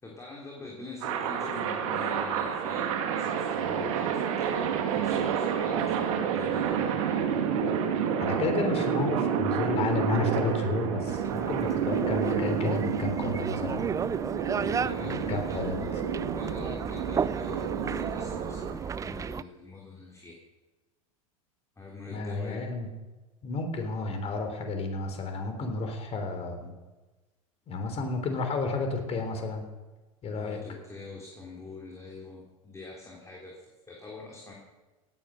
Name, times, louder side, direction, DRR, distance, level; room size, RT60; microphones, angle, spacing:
voice 1, 0.0-7.3 14.6-16.0 16.3-20.4 21.8-22.7 30.3-34.5, left 3 dB, 15° left, -2 dB, 3.2 m, -44 dB
sound 1, 1.0-18.7, right 7 dB, 65° right, 2.2 m, -29 dB
voice 2, 8.2-13.9 15.1-15.9 22.1-22.9 23.4-26.7 27.7-29.6 30.2-30.6, left 3 dB, 35° left, 5 dB, 3.4 m, -31 dB
sound 2, 11.1-19.4, right 7 dB, 20° right, 0.4 m, -34 dB
17.0 x 9.5 x 6.4 m, 1.2 s
hypercardioid pair, 90°, 18 cm